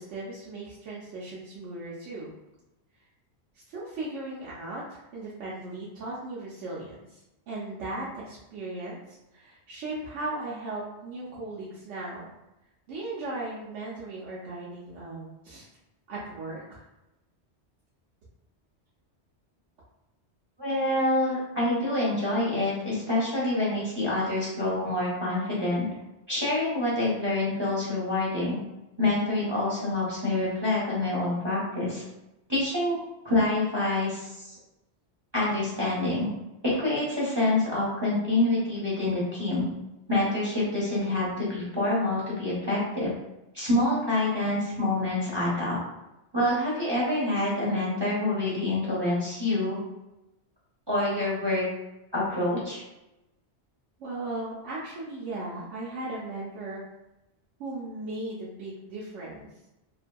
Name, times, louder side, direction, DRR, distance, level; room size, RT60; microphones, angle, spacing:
voice 1, 0.0-2.3 3.5-12.3 12.9-15.7 16.1-16.8 54.0-56.8 57.6-59.5, right 2 dB, 90° right, -7 dB, 0.9 m, -37 dB
voice 2, 20.6-25.9 26.3-28.6 29.0-32.0 32.5-33.0 33.2-34.6 35.3-36.3 36.6-39.7 40.1-43.1 43.5-45.8 46.3-49.8 50.9-51.7 52.1-52.8, left 2 dB, 30° right, -8 dB, 0.6 m, -26 dB
2.6 x 2.5 x 2.2 m, 0.95 s
omnidirectional pair, 1.2 m